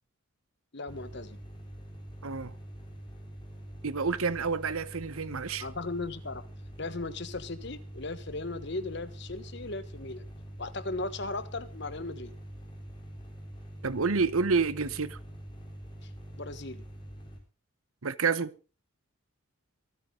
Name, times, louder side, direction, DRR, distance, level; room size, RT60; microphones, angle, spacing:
voice 1, 0.7-1.4 5.6-6.4 6.8-10.3 10.6-12.3 16.0-16.8, left 2 dB, 50° left, 1.3 m, -37 dB
sound 1, 0.9-17.4, equal, 20° left, 5.0 m, -45 dB
voice 2, 2.2-2.5 3.8-5.6 13.8-15.2 18.0-18.5, right 4 dB, 80° right, 1.0 m, -29 dB
25.0 x 9.5 x 3.8 m
head